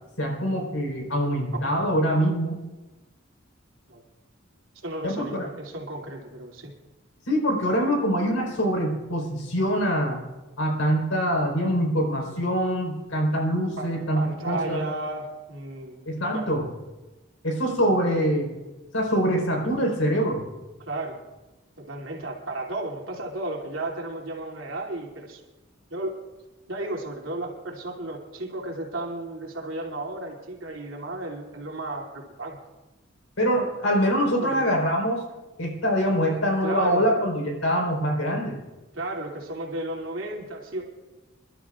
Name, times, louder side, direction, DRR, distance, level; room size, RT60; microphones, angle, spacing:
voice 1, 0.2-2.6 5.0-5.5 7.3-10.2 10.6-14.8 16.1-16.6 17.4-18.5 18.9-20.4 33.4-35.2 35.6-38.6, equal, 85° left, 0 dB, 4.3 m, -24 dB
voice 2, 4.8-6.7 13.8-13.9 14.1-16.1 16.3-16.6 17.8-17.9 20.8-21.2 21.8-25.4 25.9-26.2 26.7-32.6 33.5-33.7 34.4-34.7 36.2-37.1 38.9-40.8, right 2 dB, 75° right, -1 dB, 2.8 m, -34 dB
27.5 x 12.0 x 2.5 m, 1.1 s
head